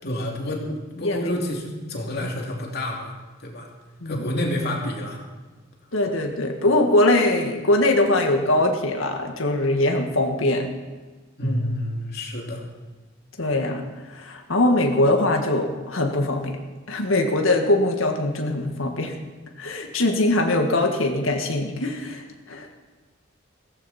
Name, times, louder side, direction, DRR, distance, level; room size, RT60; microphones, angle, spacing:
voice 1, 0.0-0.6 1.0-3.1 3.4-3.7 4.0-5.2 11.4-12.6, left 1 dB, 55° left, -1 dB, 2.9 m, -29 dB
voice 2, 1.0-1.3 4.0-4.2 5.9-10.7 11.4-11.7 13.4-16.6 16.9-19.2 19.6-22.7, left 1 dB, 85° left, 3 dB, 1.8 m, -22 dB
17.0 x 15.0 x 4.3 m, 1.3 s
head